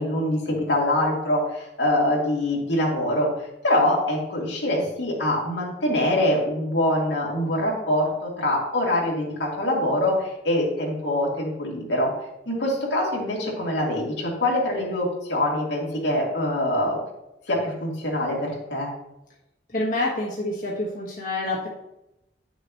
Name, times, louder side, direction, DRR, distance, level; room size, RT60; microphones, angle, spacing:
voice 1, 0.0-12.1 12.5-17.0 17.5-18.9, left 1 dB, 80° left, -3 dB, 2.6 m, -24 dB
voice 2, 19.7-21.7, left 2 dB, 50° left, -5 dB, 1.6 m, -27 dB
10.0 x 6.8 x 3.1 m, 0.89 s
head